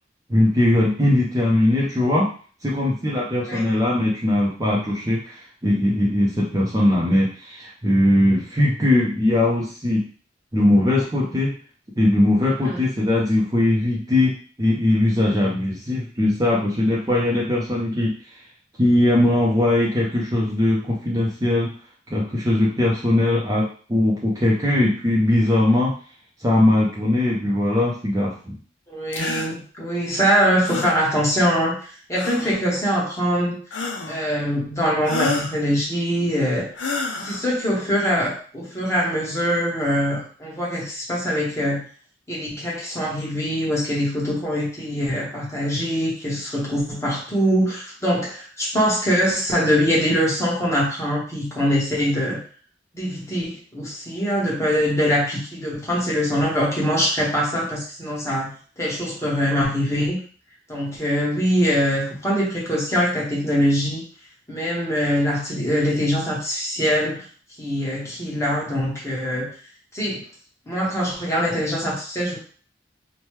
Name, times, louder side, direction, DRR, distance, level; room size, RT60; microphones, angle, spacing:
voice 1, 0.3-2.3 2.6-10.0 10.5-11.5 12.0-14.3 14.6-18.1 18.8-21.7 22.1-25.9 26.4-28.6, left 1 dB, 20° right, -5 dB, 0.5 m, -20 dB
voice 2, 28.9-31.8 32.1-33.6 34.0-36.7 37.2-41.8 42.3-52.4 52.9-60.2 60.7-64.0 64.5-67.2 67.6-69.5 69.9-70.2 70.7-72.4, equal, 15° left, -5 dB, 1.1 m, -23 dB
sound 1, 29.1-29.5 30.6-31.0 32.1-32.6 33.7-34.2 35.0-35.6 36.7-37.4, left 4 dB, 75° left, 0.5 m, -28 dB
3.0 x 2.2 x 3.1 m, 0.41 s
head